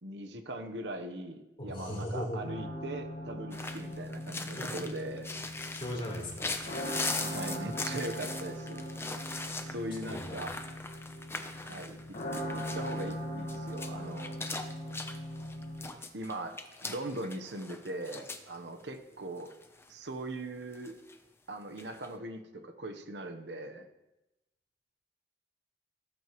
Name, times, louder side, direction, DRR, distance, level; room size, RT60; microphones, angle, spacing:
voice 1, 0.0-5.3 7.2-8.8 9.7-10.5 11.6-12.0 12.5-14.3 16.1-16.5 16.8-19.5 19.9-20.9 21.5-23.9, right 1 dB, 75° right, 6 dB, 1.0 m, -40 dB
voice 2, 1.6-2.7 4.6-4.8 5.7-6.7 10.1-10.4, equal, 30° left, -3 dB, 3.7 m, -38 dB
sound 1, 2.4-15.9, equal, 50° left, 1.5 m, -40 dB
sound 2, 3.5-18.6 18.8-18.9 19.4-19.9 20.7-21.2 21.7-22.1, left 3 dB, 15° left, 0.7 m, -40 dB
17.5 x 8.9 x 3.1 m, 0.99 s
head